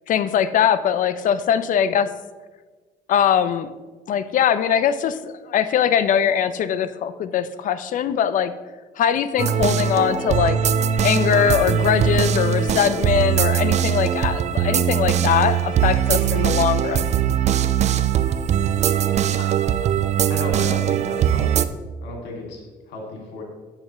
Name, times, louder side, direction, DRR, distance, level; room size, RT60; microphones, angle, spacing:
voice 1, 0.1-2.1 3.1-3.7 4.1-8.5 9.0-10.6 11.0-17.1, left 9 dB, 50° left, 12 dB, 0.5 m, -21 dB
sound 1, 9.4-21.7, right 9 dB, 45° right, 0.4 m, -21 dB
voice 2, 20.3-21.7 22.0-23.4, left 2 dB, 80° left, 0 dB, 2.4 m, -34 dB
8.8 x 7.4 x 3.0 m, 1.3 s
cardioid pair, 110°, 17 cm